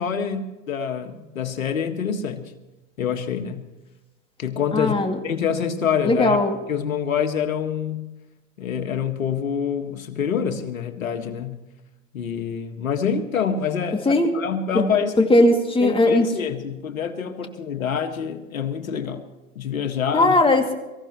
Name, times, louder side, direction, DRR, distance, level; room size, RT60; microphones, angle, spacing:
voice 1, 0.0-2.5 3.0-3.7 4.4-5.0 5.2-6.4 6.7-8.1 8.6-11.6 12.1-15.3 15.8-19.2 19.6-20.4, left 7 dB, 85° left, 7 dB, 1.8 m, -26 dB
voice 2, 4.7-5.2 6.0-6.6 14.1-14.3 14.7-14.8 15.2-16.3 20.1-20.7, left 1 dB, 15° left, 4 dB, 2.4 m, -18 dB
24.0 x 15.0 x 3.1 m, 1.1 s
hypercardioid pair, 100°, 40 cm